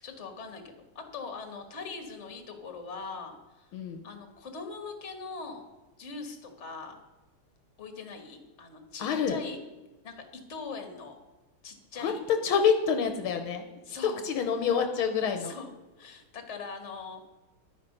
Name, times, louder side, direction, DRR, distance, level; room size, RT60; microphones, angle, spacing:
voice 1, 0.0-3.7 4.0-5.6 6.0-7.0 7.8-9.6 10.0-10.1 10.5-11.1 11.6-12.2 13.9-14.2 15.4-15.7 16.0-17.3, left 4 dB, 35° left, 5 dB, 1.7 m, -41 dB
voice 2, 3.7-4.0 9.0-9.4 12.0-12.2 12.4-13.7 14.0-15.5, left 6 dB, 75° left, 6 dB, 1.6 m, -27 dB
11.5 x 9.8 x 5.4 m, 1.1 s
omnidirectional pair, 2.4 m